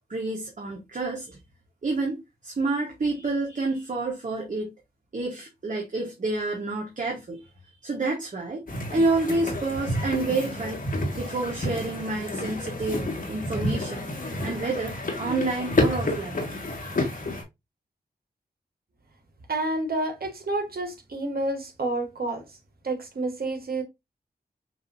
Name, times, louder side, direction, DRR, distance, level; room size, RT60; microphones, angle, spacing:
voice 1, 0.1-1.4 1.8-4.7 5.1-7.4 7.8-8.6 8.9-10.8 11.1-14.1 14.4-16.4, right 3 dB, 50° right, 1.2 m, -29 dB
sound 1, 8.7-17.4, left 1 dB, 55° left, 1.5 m, -30 dB
voice 2, 19.5-22.4 22.8-23.8, right 2 dB, 65° right, 1.4 m, -29 dB
6.2 x 2.6 x 2.6 m
cardioid pair, 50°, 17 cm